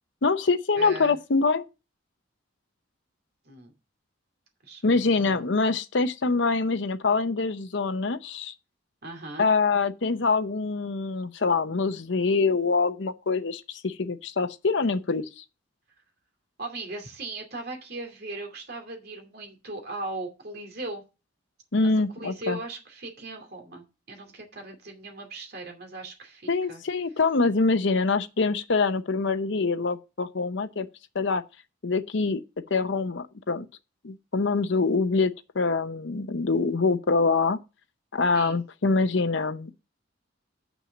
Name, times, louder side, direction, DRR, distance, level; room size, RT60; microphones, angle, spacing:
voice 1, 0.2-1.7 4.8-8.5 9.4-15.4 21.7-22.6 26.5-30.9 31.1-31.4 31.8-32.4 32.7-33.7 34.0-37.6 38.1-39.7, left 4 dB, 65° left, 0.7 m, -25 dB
voice 2, 0.8-1.2 3.4-3.7 4.6-4.8 5.2-5.5 9.0-9.5 16.6-21.0 21.8-21.9 22.2-26.8 38.3-38.6, right 2 dB, 55° right, 2.5 m, -38 dB
6.6 x 6.1 x 7.0 m
head